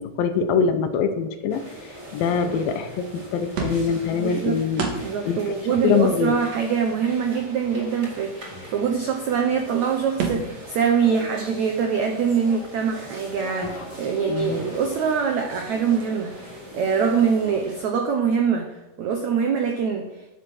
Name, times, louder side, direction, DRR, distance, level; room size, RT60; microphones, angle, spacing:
voice 1, 0.0-1.7 2.1-4.8 5.3-5.4 5.7-6.4 13.6-13.7 14.3-14.6, left 6 dB, 75° left, 7 dB, 2.3 m, -23 dB
sound 1, 1.5-17.9, equal, 25° right, 1.7 m, -41 dB
sound 2, 3.5-4.1 4.8-5.3 5.6-5.7 5.9-6.0 6.4-7.4 9.3-9.4 9.6-9.7 10.2-10.7, right 5 dB, 55° right, 2.4 m, -30 dB
voice 2, 4.2-20.1, right 6 dB, 85° right, 3 dB, 1.6 m, -24 dB
10.5 x 7.7 x 6.3 m, 1.1 s
omnidirectional pair, 4.7 m